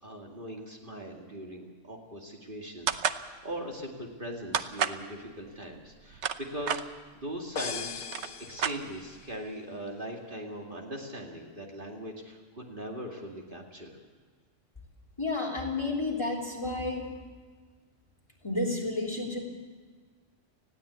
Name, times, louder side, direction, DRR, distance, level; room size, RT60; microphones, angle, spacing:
voice 1, 0.0-6.8 7.1-7.9 8.4-14.0, right 1 dB, 45° right, 0 dB, 2.5 m, -40 dB
sound 1, 2.9-3.2 4.5-5.0 5.9-6.8 7.7-7.8 8.0-9.2, right 7 dB, 70° right, 1.1 m, -30 dB
sound 2, 7.6-9.4, left 6 dB, 55° left, 1.1 m, -39 dB
voice 2, 15.2-17.1 18.4-19.4, left 2 dB, 20° left, -1 dB, 3.4 m, -31 dB
20.0 x 15.5 x 8.3 m, 1.5 s
omnidirectional pair, 1.3 m